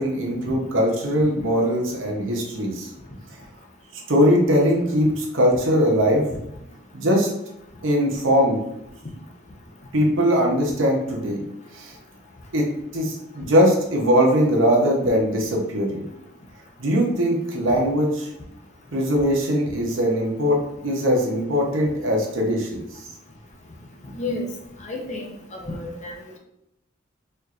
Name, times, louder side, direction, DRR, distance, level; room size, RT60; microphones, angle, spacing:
voice 1, 0.0-2.9 4.1-6.3 6.9-7.3 7.8-8.6 9.9-11.4 11.7-11.9 12.5-12.6 12.9-16.0 16.8-18.3 18.9-20.6 20.8-22.8, equal, 80° right, 0 dB, 0.8 m, -20 dB
voice 2, 24.1-24.5 24.8-25.3 25.5-26.2, left 2 dB, 35° left, 0 dB, 0.6 m, -30 dB
4.4 x 2.6 x 2.4 m, 0.80 s
head